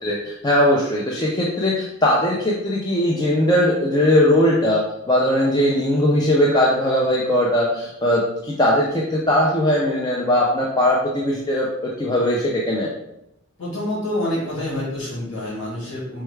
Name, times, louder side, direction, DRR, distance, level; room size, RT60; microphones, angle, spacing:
voice 1, 0.0-12.9, left 1 dB, 20° left, -4 dB, 0.4 m, -19 dB
voice 2, 13.6-16.2, left 1 dB, 85° left, -6 dB, 1.2 m, -27 dB
4.5 x 2.2 x 3.2 m, 0.83 s
head